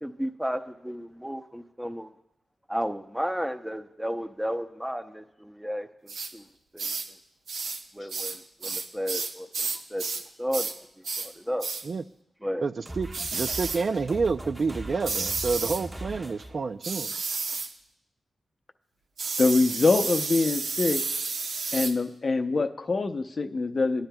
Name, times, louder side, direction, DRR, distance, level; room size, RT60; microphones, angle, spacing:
voice 1, 0.0-2.1 2.7-6.5 6.7-6.9 7.9-10.0 10.4-10.7 11.2-11.7 12.4-12.6, equal, 5° right, 7 dB, 0.7 m, -33 dB
sound 1, 6.1-6.3 6.8-7.1 7.5-7.8 8.1-10.3 10.5-10.8 11.0-11.3 11.6-11.9 13.1-13.8 15.0-15.8 16.8-17.7 19.2-22.0, right 4 dB, 80° right, 0.8 m, -31 dB
voice 2, 12.6-17.2, right 4 dB, 55° right, 12 dB, 0.3 m, -29 dB
sound 2, 12.8-16.6, right 1 dB, 25° right, 1.3 m, -39 dB
voice 3, 19.4-21.0 21.7-24.1, left 3 dB, 45° left, 8 dB, 0.6 m, -24 dB
19.0 x 10.5 x 2.2 m, 0.81 s
cardioid pair, 80°, 0 cm